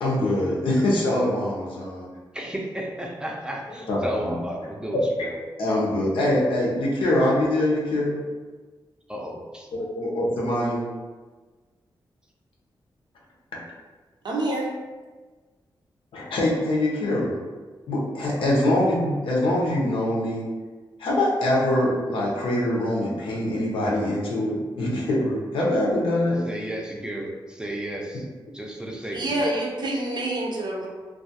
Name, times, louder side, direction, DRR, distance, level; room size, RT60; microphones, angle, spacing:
voice 1, 0.0-2.1 3.9-4.3 4.9-5.3 5.6-8.3 9.7-10.9 13.5-13.6 16.1-17.4 17.9-20.5 21.0-26.5, left 1 dB, 85° left, -3 dB, 0.6 m, -24 dB
voice 2, 2.3-5.4 9.1-9.7 18.3-18.5 26.5-28.2 28.5-29.4, right 1 dB, 10° right, -1 dB, 0.5 m, -33 dB
voice 3, 14.2-14.7 29.1-30.9, right 1 dB, 60° right, -1 dB, 0.6 m, -27 dB
2.3 x 2.3 x 2.7 m, 1.3 s
cardioid pair, 65°, 9 cm